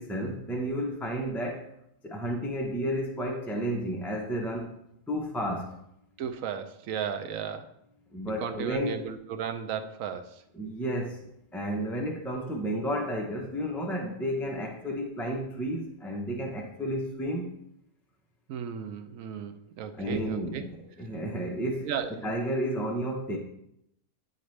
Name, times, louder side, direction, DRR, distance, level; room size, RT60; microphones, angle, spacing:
voice 1, 0.0-1.7 2.0-4.7 5.1-5.7 8.1-9.1 10.5-11.2 11.5-17.5 20.0-21.9 22.2-23.4, equal, ahead, 0 dB, 0.5 m, -32 dB
voice 2, 6.2-7.7 8.4-10.4 18.5-20.6 21.8-22.1, right 8 dB, 70° right, 8 dB, 1.0 m, -35 dB
9.4 x 4.1 x 3.2 m, 0.78 s
omnidirectional pair, 1.5 m